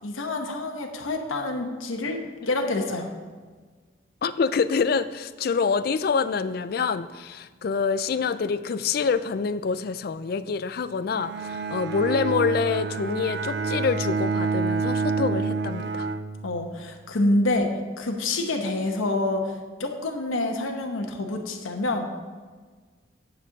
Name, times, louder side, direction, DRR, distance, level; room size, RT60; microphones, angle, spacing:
voice 1, 0.0-3.1 16.4-22.1, left 2 dB, 90° left, 3 dB, 0.9 m, -27 dB
voice 2, 4.2-16.1, left 5 dB, 50° left, 13 dB, 0.3 m, -26 dB
Bowed string instrument, 11.1-16.9, right 4 dB, 55° right, 0.4 m, -28 dB
10.0 x 4.3 x 6.4 m, 1.5 s
head